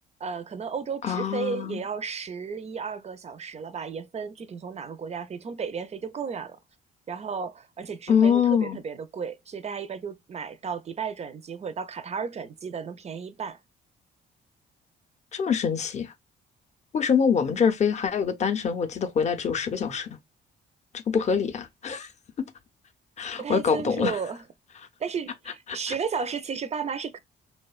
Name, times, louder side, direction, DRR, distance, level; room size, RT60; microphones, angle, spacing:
voice 1, 0.2-6.6 7.1-13.6 23.4-24.4 25.0-27.2, right 6 dB, 35° right, 0.4 m, -33 dB
voice 2, 1.0-1.8 8.1-8.8 15.3-16.1 16.9-20.1 21.1-22.1 22.4-22.5 23.2-24.1 25.7-25.8, left 7 dB, 35° left, 0.5 m, -24 dB
2.7 x 2.1 x 2.3 m
cardioid pair, 90°, 20 cm